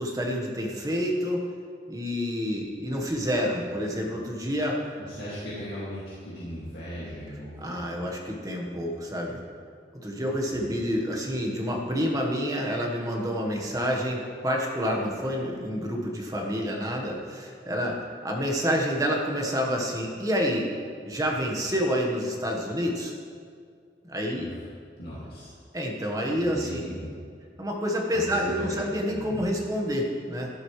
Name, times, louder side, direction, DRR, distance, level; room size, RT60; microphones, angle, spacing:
voice 1, 0.0-1.4 1.9-4.8 7.6-9.4 10.0-18.0 18.2-20.7 21.1-23.1 24.0-24.5 25.7-26.8 27.6-30.5, equal, 20° right, -1 dB, 1.4 m, -28 dB
voice 2, 5.0-7.9 10.5-10.6 24.4-24.6 25.0-25.5 26.3-27.2 28.1-28.8 29.1-29.5, equal, 60° left, -9 dB, 2.3 m, -38 dB
12.5 x 11.5 x 3.3 m, 2.2 s
head